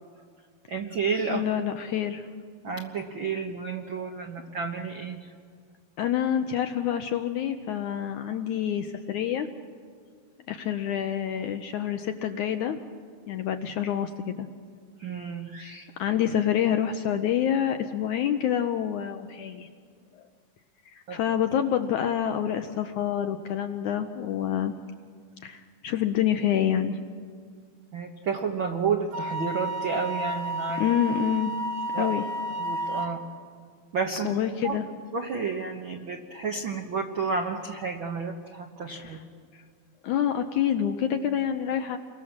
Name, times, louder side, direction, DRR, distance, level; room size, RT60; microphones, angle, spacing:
voice 1, 0.7-1.4 2.6-5.3 15.0-15.9 21.1-21.2 27.9-30.8 31.9-32.1 32.6-33.2 33.9-34.3 34.6-34.8 35.1-39.2, right 5 dB, 70° right, 3 dB, 1.1 m, -31 dB
voice 2, 1.3-2.3 6.0-9.5 10.5-12.8 13.3-14.5 16.0-19.7 20.9-24.7 25.4-27.0 30.8-31.5 31.9-32.2 34.2-34.9 38.9-39.2 40.0-42.0, left 9 dB, 75° left, 7 dB, 1.8 m, -27 dB
Wind instrument woodwind instrument, 29.1-33.1, right 1 dB, 50° right, 2.4 m, -31 dB
29.5 x 23.5 x 7.3 m, 2.1 s
omnidirectional pair, 4.3 m